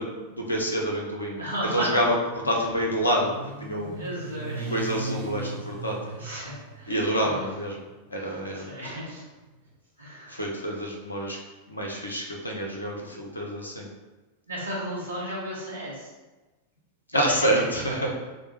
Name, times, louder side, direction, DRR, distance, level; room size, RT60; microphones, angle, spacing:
voice 1, 0.0-4.0 4.6-6.0 6.9-7.8 8.1-8.9 10.3-11.4 11.7-13.9 17.1-18.1, equal, 80° left, 0 dB, 0.8 m, -27 dB
Motorcycle, 1.4-9.6, right 2 dB, 45° right, 0.6 m, -40 dB
voice 2, 1.4-1.9 3.9-4.7 6.2-6.9 7.2-7.4 8.2-9.2 10.0-10.3 14.5-16.1 17.1-17.3 17.9-18.0, right 1 dB, 80° right, -5 dB, 1.3 m, -34 dB
6.3 x 2.3 x 3.1 m, 1.2 s
figure-of-eight pair, 90°, 0 cm